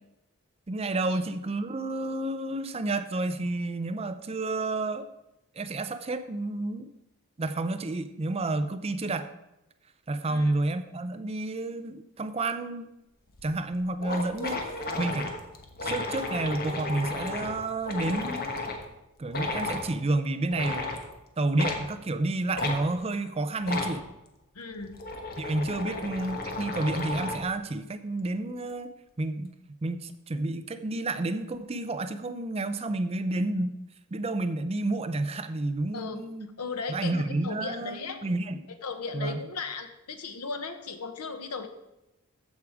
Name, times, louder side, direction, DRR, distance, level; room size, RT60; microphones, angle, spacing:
voice 1, 0.7-5.1 5.5-6.9 7.4-9.3 10.1-12.9 13.4-15.3 15.8-18.4 19.2-20.9 21.4-24.0 25.4-28.9 29.2-29.5 29.8-33.8 34.1-36.5 36.9-38.6 39.1-39.4, right 2 dB, 25° right, 10 dB, 0.5 m, -30 dB
sound 1, 13.3-13.4 13.7-13.8 14.0-18.8 19.3-19.9 20.5-21.0 21.6-21.8 22.5-22.8 23.6-24.0 24.7-27.5, left 3 dB, 45° left, 1.1 m, -33 dB
voice 2, 24.5-25.0 25.9-26.0 35.9-36.2 36.6-38.2 38.8-41.7, left 4 dB, 90° left, 7 dB, 1.0 m, -37 dB
14.5 x 4.9 x 4.8 m, 0.91 s
head